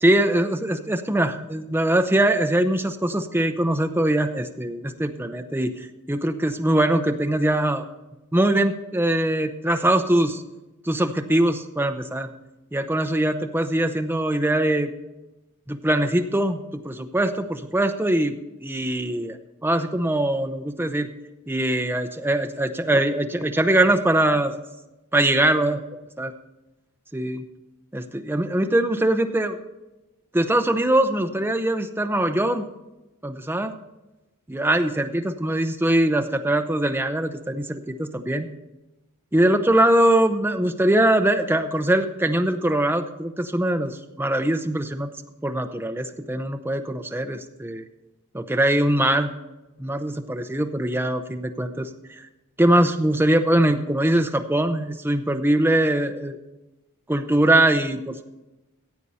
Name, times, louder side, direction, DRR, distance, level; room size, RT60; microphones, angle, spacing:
voice 1, 0.0-7.8 8.3-10.4 10.8-12.3 12.7-14.9 15.7-21.1 21.5-24.5 25.1-25.8 26.2-26.3 27.1-27.4 27.9-29.6 30.3-32.6 33.2-33.7 34.5-38.5 39.3-45.1 45.4-47.8 48.3-49.3 49.8-52.2 52.6-56.4 57.1-58.2, right 1 dB, 10° right, 6 dB, 0.7 m, -22 dB
15.0 x 8.3 x 4.2 m, 1.0 s
head